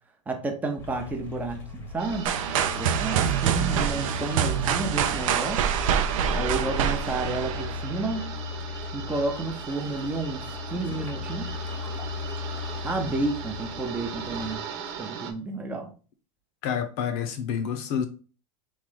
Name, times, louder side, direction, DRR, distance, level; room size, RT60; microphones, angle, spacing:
voice 1, 0.3-2.4 2.7-5.7 6.3-8.3 8.9-11.5 12.8-14.6 15.0-15.9, right 2 dB, 10° right, 0.7 m, -31 dB
sound 1, 0.8-14.6, left 3 dB, 10° left, 1.0 m, -37 dB
sound 2, 2.0-15.3, right 6 dB, 55° right, 1.0 m, -39 dB
sound 3, 2.3-8.2, right 9 dB, 80° right, 0.6 m, -26 dB
voice 2, 16.6-18.1, left 7 dB, 50° left, 0.8 m, -29 dB
3.8 x 3.2 x 3.8 m
supercardioid pair, 145°, 17 cm